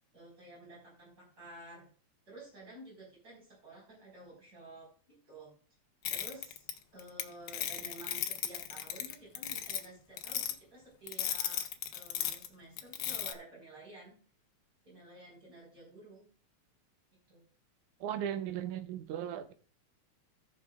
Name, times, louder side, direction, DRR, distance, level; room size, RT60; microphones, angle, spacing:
voice 1, 0.1-1.9 2.3-5.5 6.1-11.6 11.9-14.2 14.8-16.2 17.3-17.4, right 1 dB, 30° right, 5.0 m, -52 dB
sound 1, 6.1-7.2 7.5-9.9 10.2-10.5 11.1-12.5 12.8-13.3, left 10 dB, 90° left, 1.1 m, -35 dB
voice 2, 18.0-19.5, right 10 dB, 90° right, 2.3 m, -37 dB
17.0 x 6.2 x 2.4 m
omnidirectional pair, 3.3 m